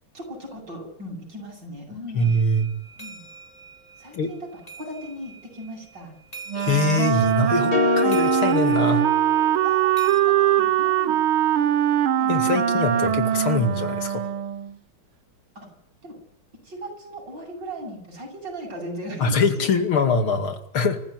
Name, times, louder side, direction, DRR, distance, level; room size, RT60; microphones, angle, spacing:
voice 1, 0.1-2.3 3.0-3.2 4.0-4.5 4.8-6.1 9.6-11.1 12.2-12.5 15.6-15.7 16.0-16.2 16.6-19.7, equal, 55° right, 1 dB, 8.8 m, -38 dB
voice 2, 2.1-2.7 4.1-4.3 6.5-9.1 12.3-14.3 19.2-21.0, left 3 dB, 80° left, 7 dB, 3.1 m, -23 dB
sound 1, 2.2-10.2, right 4 dB, 15° left, 2.9 m, -44 dB
Wind instrument woodwind instrument, 6.5-14.8, right 10 dB, 85° right, 2.0 m, -22 dB
sound 2, 7.7-10.0, left 6 dB, 55° left, 1.7 m, -26 dB
27.0 x 15.0 x 9.6 m, 0.76 s
omnidirectional pair, 2.3 m